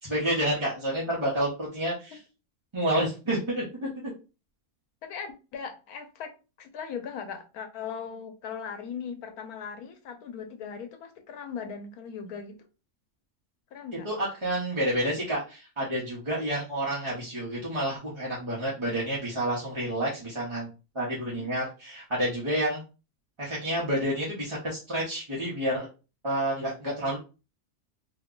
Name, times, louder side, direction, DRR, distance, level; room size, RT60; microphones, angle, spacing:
voice 1, 0.0-2.2 2.7-4.1 14.0-20.7 20.9-22.8 23.4-25.9 26.2-27.2, right 1 dB, 25° right, 0.8 m, -29 dB
voice 2, 5.0-12.7 13.7-14.1 21.2-21.5, left 6 dB, 80° left, 1.1 m, -39 dB
2.9 x 2.2 x 3.7 m
omnidirectional pair, 1.5 m